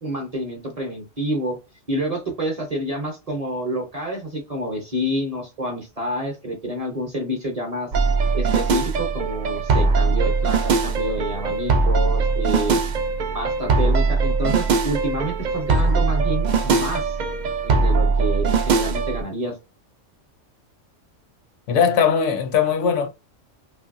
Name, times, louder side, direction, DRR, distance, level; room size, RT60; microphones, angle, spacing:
voice 1, 0.0-1.6 1.9-7.9 8.3-12.8 13.3-17.2 17.6-19.5, right 1 dB, 35° right, 0.7 m, -28 dB
sound 1, 7.9-19.2, right 4 dB, 75° right, 0.4 m, -21 dB
voice 2, 21.7-23.1, left 7 dB, 75° left, 0.9 m, -19 dB
3.0 x 2.5 x 2.5 m
omnidirectional pair, 1.3 m